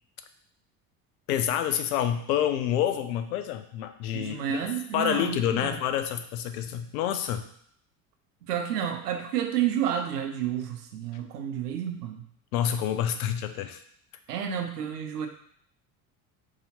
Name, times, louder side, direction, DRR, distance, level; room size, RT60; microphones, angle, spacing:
voice 1, 1.3-4.6 4.9-7.4 12.5-13.8, left 10 dB, 65° left, 8 dB, 0.6 m, -28 dB
voice 2, 4.1-5.8 8.5-12.2 14.3-15.3, right 9 dB, 80° right, 5 dB, 0.7 m, -30 dB
4.8 x 2.8 x 2.8 m, 0.65 s
hypercardioid pair, 70°, 46 cm